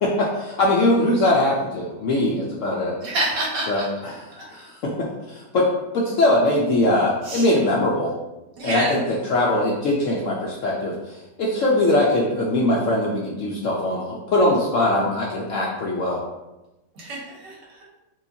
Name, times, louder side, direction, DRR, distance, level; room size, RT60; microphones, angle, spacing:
voice 1, 0.0-2.9 3.7-5.7 5.9-8.1 8.6-16.2, left 1 dB, 65° left, -3 dB, 0.8 m, -21 dB
voice 2, 3.0-3.9 7.2-7.4 8.6-8.9 17.0-17.6, right 2 dB, 80° right, -4 dB, 1.8 m, -27 dB
4.5 x 3.1 x 2.7 m, 0.99 s
omnidirectional pair, 1.8 m